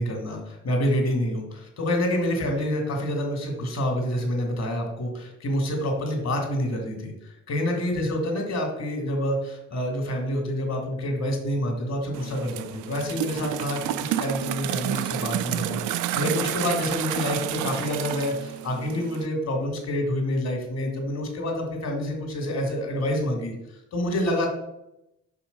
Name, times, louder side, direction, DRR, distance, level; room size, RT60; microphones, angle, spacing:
voice 1, 0.0-23.5 23.9-24.5, left 1 dB, 60° left, 3 dB, 2.5 m, -27 dB
sound 1, 12.1-19.3, right 12 dB, 85° right, 0.5 m, -30 dB
5.6 x 5.3 x 5.3 m, 0.85 s
cardioid pair, 90°, 30 cm